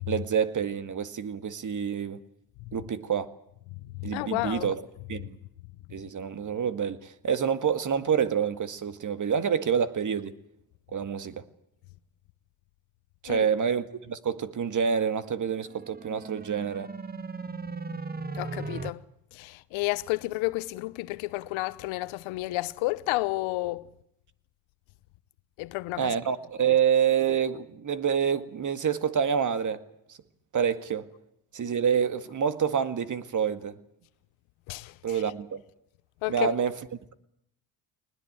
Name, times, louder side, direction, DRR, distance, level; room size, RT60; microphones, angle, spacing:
voice 1, 0.1-2.2 2.7-3.3 4.0-4.8 5.1-5.4 5.9-10.3 10.9-11.4 13.2-16.9 26.0-29.8 30.5-31.1 31.5-33.8 35.0-35.6 36.3-36.7, right 7 dB, 40° right, 1.9 m, -27 dB
voice 2, 3.9-4.7 13.3-13.5 18.3-19.0 19.3-23.9 25.6-26.1 34.7-35.2 36.2-36.5, left 20 dB, 75° left, 1.0 m, -31 dB
sound 1, 15.6-18.9, right 4 dB, 20° right, 1.4 m, -37 dB
21.0 x 20.0 x 8.9 m
supercardioid pair, 85°, 47 cm